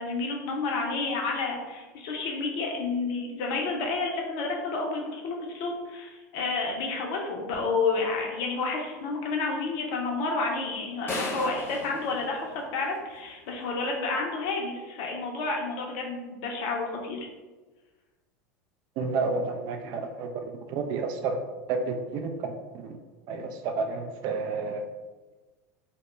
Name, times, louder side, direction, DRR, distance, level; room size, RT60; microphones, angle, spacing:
voice 1, 0.0-17.3, left 3 dB, 55° left, 0 dB, 0.5 m, -30 dB
sound 1, 11.1-13.2, left 2 dB, 25° left, 0.7 m, -36 dB
voice 2, 19.0-20.3 20.7-21.4 21.7-23.0 23.3-24.8, right 4 dB, 50° right, 5 dB, 0.4 m, -30 dB
2.1 x 2.0 x 3.0 m, 1.2 s
hypercardioid pair, 80°, 9 cm